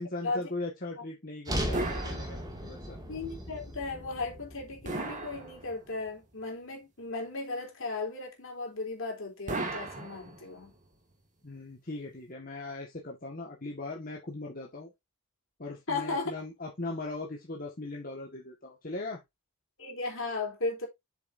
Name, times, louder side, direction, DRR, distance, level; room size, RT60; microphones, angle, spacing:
voice 1, 0.0-3.0 11.4-14.9 15.6-19.2, left 2 dB, 40° left, 1.7 m, -39 dB
sound 1, 1.4-5.7, equal, 15° right, 2.2 m, -37 dB
sound 2, 1.7-2.9 4.8-6.1 9.5-10.8, right 2 dB, 35° right, 2.0 m, -37 dB
voice 2, 3.1-10.7 15.9-16.3 19.8-20.9, left 3 dB, 60° left, 3.6 m, -36 dB
8.0 x 7.0 x 2.7 m
head